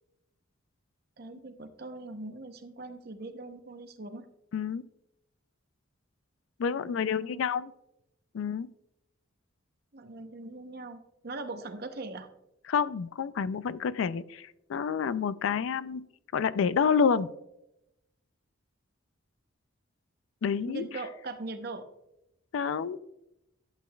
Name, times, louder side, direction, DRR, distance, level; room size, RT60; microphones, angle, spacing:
voice 1, 1.2-4.3 6.8-7.5 9.9-12.3 20.7-21.9, right 2 dB, 50° right, 8 dB, 0.8 m, -41 dB
voice 2, 4.5-4.8 6.6-7.7 8.3-8.7 12.7-16.0 16.3-17.3 20.4-20.8 22.5-23.0, left 6 dB, 70° left, 16 dB, 0.3 m, -28 dB
11.5 x 8.3 x 2.3 m, 0.84 s
head